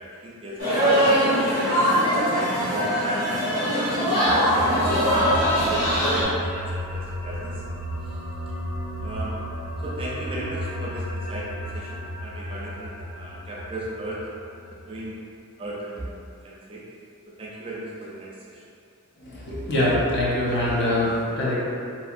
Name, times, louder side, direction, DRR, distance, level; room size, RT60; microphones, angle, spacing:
voice 1, 0.0-2.2 2.7-7.6 8.0-8.2 9.0-9.4 9.8-14.3 14.9-15.2 15.6-16.1 16.4-16.8 17.4-18.6, right 1 dB, 25° right, -6 dB, 0.3 m, -36 dB
sound 1, 0.6-6.2, equal, 75° left, 0.9 m, -21 dB
sound 2, 4.2-15.0, equal, 90° left, 0.5 m, -33 dB
voice 2, 19.2-21.5, left 1 dB, 50° left, -7 dB, 0.7 m, -23 dB
2.7 x 2.7 x 2.5 m, 2.4 s
head